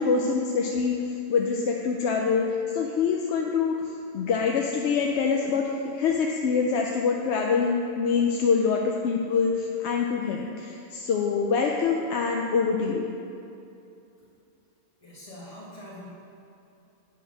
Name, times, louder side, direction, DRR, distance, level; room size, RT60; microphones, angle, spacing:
voice 1, 0.0-3.8 4.1-13.0, left 5 dB, 70° left, 1 dB, 0.8 m, -25 dB
voice 2, 15.0-16.1, left 1 dB, 30° left, -9 dB, 1.1 m, -43 dB
8.7 x 4.4 x 6.2 m, 2.7 s
omnidirectional pair, 1.3 m